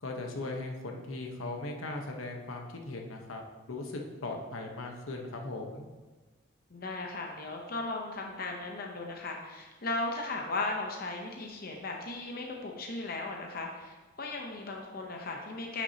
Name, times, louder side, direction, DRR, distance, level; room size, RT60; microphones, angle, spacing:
voice 1, 0.0-3.4 3.7-5.9, left 2 dB, 90° left, 2 dB, 1.0 m, -38 dB
voice 2, 6.7-15.8, left 2 dB, 50° left, 1 dB, 0.7 m, -36 dB
9.4 x 6.1 x 2.8 m, 1.3 s
head